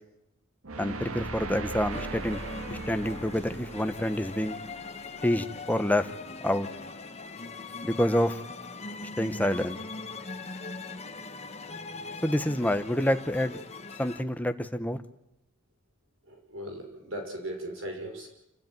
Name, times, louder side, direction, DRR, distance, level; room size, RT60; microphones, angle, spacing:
sound 1, 0.6-5.7, right 3 dB, 85° right, 1.6 m, -39 dB
voice 1, 0.8-2.4 2.7-4.6 5.2-6.1 6.4-6.7 7.8-8.4 9.2-9.8 12.2-13.6 14.0-15.0, left 1 dB, 10° left, 9 dB, 1.0 m, -27 dB
sound 2, 1.9-14.2, left 3 dB, 30° left, 1.3 m, -41 dB
voice 2, 16.3-18.3, right 1 dB, 65° right, 3 dB, 5.7 m, -38 dB
28.5 x 14.0 x 9.2 m, 0.88 s
head